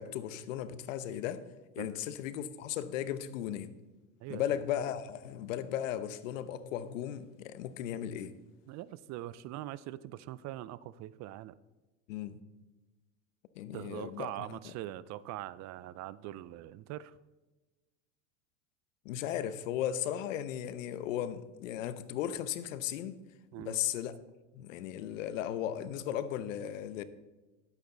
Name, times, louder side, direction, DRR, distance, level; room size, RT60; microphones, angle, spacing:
voice 1, 0.0-1.4 1.7-3.7 4.3-8.3 12.1-12.4 13.5-14.7 19.0-23.2 23.6-24.1 24.5-27.0, left 10 dB, 85° left, 0.9 m, -36 dB
voice 2, 8.7-11.6 13.7-17.2 23.5-23.8, right 14 dB, 45° right, 0.5 m, -42 dB
11.5 x 8.4 x 3.9 m
supercardioid pair, 115°, 38 cm